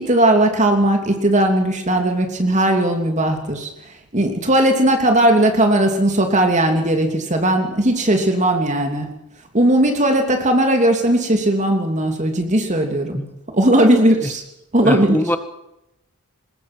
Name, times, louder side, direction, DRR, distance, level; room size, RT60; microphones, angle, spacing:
voice 1, 0.0-3.7 4.1-9.1 9.5-13.2 13.5-14.4 14.7-15.2, right 1 dB, 35° right, 4 dB, 2.9 m, -17 dB
voice 2, 14.8-15.4, left 1 dB, 10° left, 9 dB, 1.7 m, -22 dB
22.0 x 20.5 x 6.2 m, 0.85 s
head